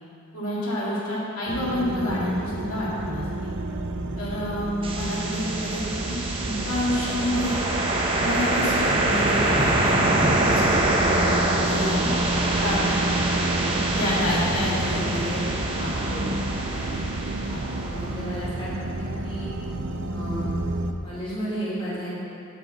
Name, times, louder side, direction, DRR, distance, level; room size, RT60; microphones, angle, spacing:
voice 1, 0.3-3.5 4.2-7.6 8.2-11.4 11.6-12.1 12.4-13.2 13.9-15.0 15.8-15.9 17.5-17.6, left 1 dB, 80° left, -7 dB, 2.2 m, -28 dB
sound 1, 1.5-20.9, right 2 dB, 60° right, 0.5 m, -30 dB
sound 2, 4.8-18.7, right 2 dB, 25° right, 0.8 m, -25 dB
voice 2, 13.3-13.7 14.8-15.4 15.9-17.0 17.8-19.5 20.1-20.5 21.0-22.2, equal, 25° left, -9 dB, 2.2 m, -34 dB
8.3 x 4.7 x 7.3 m, 2.5 s
head